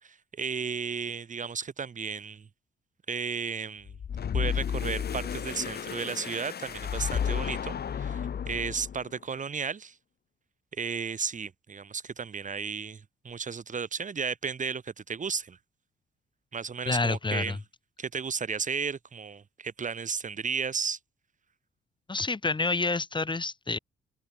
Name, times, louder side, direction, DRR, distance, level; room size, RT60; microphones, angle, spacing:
voice 1, 0.0-2.5 3.1-3.9 4.3-10.0 10.8-15.6 16.5-17.6 18.0-21.0, right 6 dB, 40° right, 3.7 m, -34 dB
sound 1, 3.9-9.1, left 8 dB, 55° left, 6.7 m, -32 dB
voice 2, 16.9-17.6 22.1-23.8, left 3 dB, 25° left, 3.8 m, -28 dB
cardioid pair, 90°, 20 cm